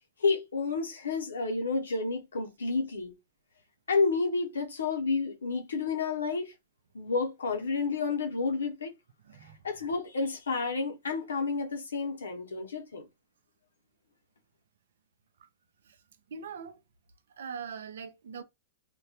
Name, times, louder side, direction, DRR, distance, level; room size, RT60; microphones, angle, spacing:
voice 1, 0.2-3.2 3.9-6.5 6.9-8.9 9.6-13.1, left 4 dB, 90° left, 0.7 m, -30 dB
voice 2, 16.3-16.8 17.4-18.4, right 6 dB, 75° right, 0.5 m, -41 dB
2.2 x 2.1 x 2.7 m
hypercardioid pair, 125°, 0 cm